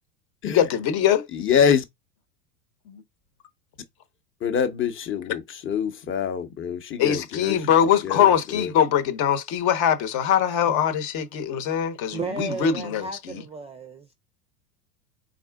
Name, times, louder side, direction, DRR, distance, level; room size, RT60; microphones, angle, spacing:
voice 1, 0.5-1.3 2.9-3.0 7.0-13.4, left 9 dB, 50° left, 1.1 m, -22 dB
voice 2, 1.3-1.8 4.4-7.7 8.0-8.7, left 7 dB, 25° left, 0.8 m, -25 dB
voice 3, 12.1-14.1, right 4 dB, 15° right, 0.4 m, -34 dB
4.1 x 3.7 x 2.3 m
hypercardioid pair, 95°, 48 cm